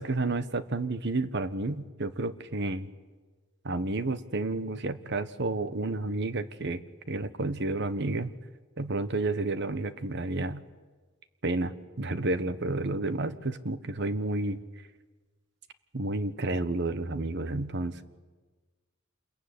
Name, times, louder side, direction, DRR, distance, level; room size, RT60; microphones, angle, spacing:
voice 1, 0.0-2.9 3.6-6.8 7.1-8.3 8.8-10.6 11.4-14.6 15.9-18.0, right 2 dB, 55° right, 13 dB, 1.3 m, -31 dB
27.5 x 22.0 x 9.7 m, 1.3 s
head